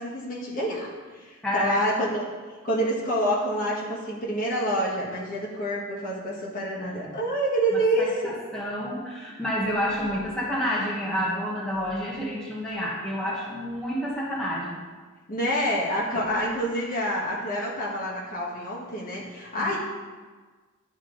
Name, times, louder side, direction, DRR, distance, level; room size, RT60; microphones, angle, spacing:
voice 1, 0.0-2.3 2.6-8.3 15.3-19.8, equal, 40° left, -5 dB, 1.5 m, -27 dB
voice 2, 1.4-1.8 6.8-7.1 7.7-14.8 16.1-16.2 19.6-19.8, equal, 5° left, -8 dB, 1.3 m, -29 dB
11.0 x 3.6 x 3.9 m, 1.4 s
head